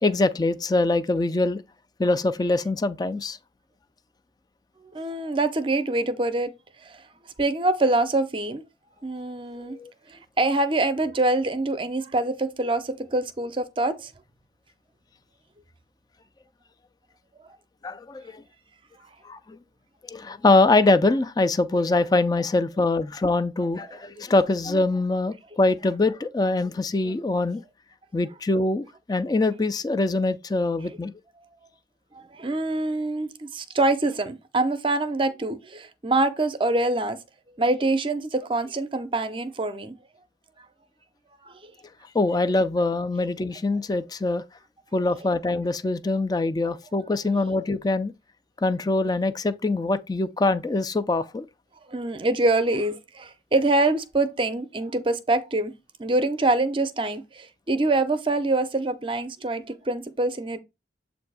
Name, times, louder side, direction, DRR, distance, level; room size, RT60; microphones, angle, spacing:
voice 1, 0.0-1.6 2.0-3.4 9.6-9.9 17.8-18.4 19.2-19.6 20.1-27.6 28.1-31.1 42.1-44.4 44.9-48.1 48.6-51.5, left 2 dB, 20° left, 0.3 m, -23 dB
voice 2, 4.9-6.5 6.8-7.0 7.4-8.6 9.0-9.8 10.1-14.1 32.1-37.2 37.6-39.9 41.4-41.7 51.9-55.7 56.0-60.6, right 2 dB, 30° right, 0.6 m, -25 dB
7.6 x 2.6 x 4.7 m
head